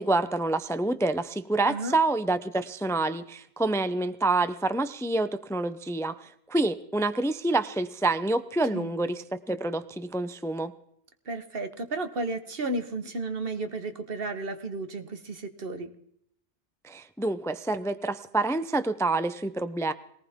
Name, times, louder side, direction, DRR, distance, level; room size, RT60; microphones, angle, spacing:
voice 1, 0.0-10.7 16.8-19.9, right 2 dB, 5° left, 12 dB, 0.4 m, -27 dB
voice 2, 1.6-2.0 8.7-8.9 11.2-15.9, right 2 dB, 60° right, 8 dB, 1.5 m, -33 dB
21.0 x 19.0 x 3.6 m, 0.71 s
omnidirectional pair, 1.1 m